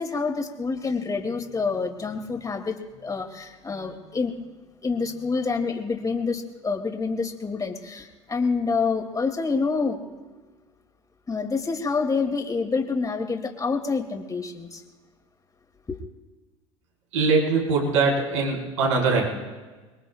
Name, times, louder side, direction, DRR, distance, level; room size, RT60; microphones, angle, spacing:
voice 1, 0.0-4.3 4.8-10.0 11.3-14.8 15.9-16.0, left 4 dB, 20° left, 4 dB, 2.6 m, -27 dB
voice 2, 17.1-19.3, right 4 dB, 75° right, -2 dB, 4.8 m, -22 dB
26.0 x 22.0 x 2.4 m, 1.3 s
hypercardioid pair, 75°, 16 cm